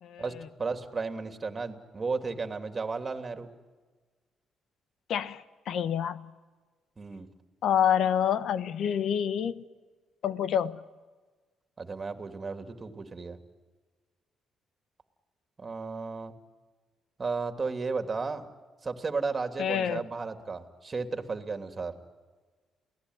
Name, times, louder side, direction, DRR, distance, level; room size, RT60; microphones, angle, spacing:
voice 1, 0.2-3.5 7.0-7.3 11.8-13.4 15.6-16.3 17.2-18.5 18.8-22.0, right 4 dB, 30° right, 2.8 m, -34 dB
voice 2, 5.1-6.2 7.6-9.6 10.2-10.8 19.6-20.0, left 9 dB, 70° left, 1.1 m, -27 dB
28.5 x 18.0 x 9.7 m
cardioid pair, 90°, 0 cm